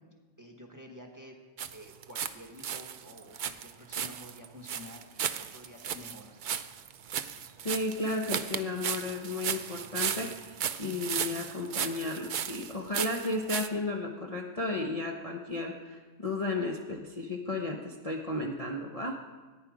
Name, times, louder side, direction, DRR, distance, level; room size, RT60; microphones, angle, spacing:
voice 1, 0.4-1.4 1.7-5.3 5.5-6.3, left 1 dB, 15° right, 2 dB, 1.1 m, -49 dB
sound 1, 1.6-2.3 2.6-13.7, right 8 dB, 90° right, 0.4 m, -35 dB
voice 2, 7.6-19.2, left 2 dB, 30° left, -1 dB, 0.8 m, -34 dB
14.5 x 9.7 x 4.9 m, 1.4 s
omnidirectional pair, 1.5 m